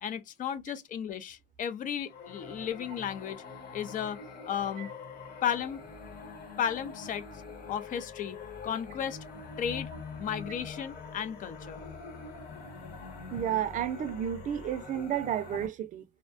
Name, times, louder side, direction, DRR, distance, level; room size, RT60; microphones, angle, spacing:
voice 1, 0.0-3.4 3.7-4.2 4.5-4.9 5.4-5.8 6.6-7.2 7.7-8.4 8.6-9.2 9.6-9.9 10.2-11.8, left 9 dB, 50° left, 0.5 m, -34 dB
sound 1, 2.0-15.7, left 4 dB, 75° left, 1.1 m, -44 dB
voice 2, 13.3-16.0, right 10 dB, 50° right, 0.4 m, -32 dB
2.6 x 2.1 x 2.4 m
cardioid pair, 110°, 17 cm